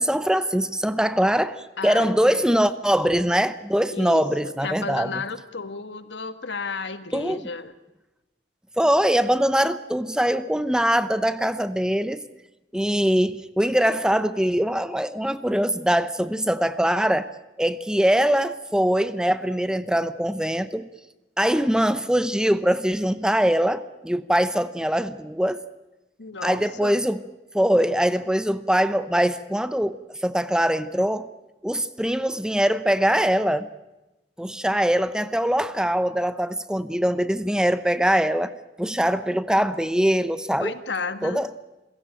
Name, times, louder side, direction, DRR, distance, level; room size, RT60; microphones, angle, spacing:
voice 1, 0.0-5.2 7.1-7.4 8.8-12.2 12.7-17.3 17.6-20.9 21.4-25.6 26.4-27.2 27.5-30.0 30.2-31.3 31.6-33.7 34.4-38.5 38.8-40.7 41.2-41.5, equal, 5° right, 13 dB, 0.8 m, -22 dB
voice 2, 1.8-2.7 3.9-7.7 26.2-26.9 40.6-41.4, left 4 dB, 90° left, 11 dB, 1.7 m, -33 dB
28.5 x 16.5 x 8.9 m, 1.0 s
head